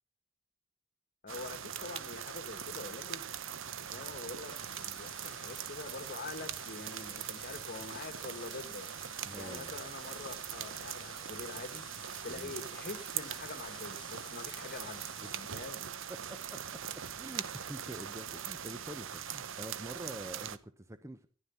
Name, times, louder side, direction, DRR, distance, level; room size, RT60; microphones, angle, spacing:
voice 1, 1.2-3.4 3.8-11.8 12.2-15.9, left 3 dB, 45° left, 1.7 m, -45 dB
sound 1, 1.3-20.6, right 9 dB, 65° right, 0.9 m, -42 dB
sound 2, 4.4-15.4, left 7 dB, 25° left, 0.9 m, -55 dB
voice 2, 9.2-9.8 12.3-12.6 15.2-15.4 16.3-16.6 17.2-21.3, right 1 dB, 15° right, 0.7 m, -46 dB
14.5 x 11.5 x 5.7 m
head